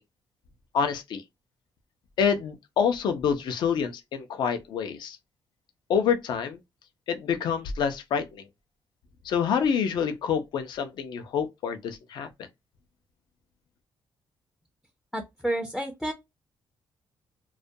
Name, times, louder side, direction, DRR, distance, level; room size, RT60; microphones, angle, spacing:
voice 1, 0.7-1.2 2.2-5.2 5.9-6.6 7.1-8.4 9.2-12.3, left 7 dB, 65° left, 0.5 m, -27 dB
voice 2, 15.1-16.1, right 1 dB, 5° left, 0.4 m, -30 dB
2.3 x 2.2 x 2.6 m
cardioid pair, 135°, 8 cm